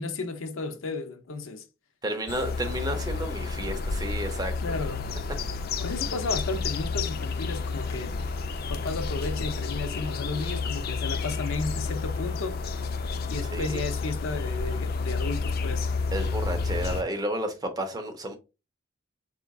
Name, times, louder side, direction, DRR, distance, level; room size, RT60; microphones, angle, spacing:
voice 1, 0.0-1.7 4.6-5.1 5.8-8.2 8.7-12.6 13.3-15.9, left 3 dB, 90° left, 0.6 m, -33 dB
voice 2, 2.0-4.8 13.5-13.8 16.1-18.4, right 1 dB, 20° right, 0.6 m, -32 dB
sound 1, 2.3-17.0, left 4 dB, 50° left, 0.4 m, -30 dB
4.3 x 3.7 x 2.3 m
head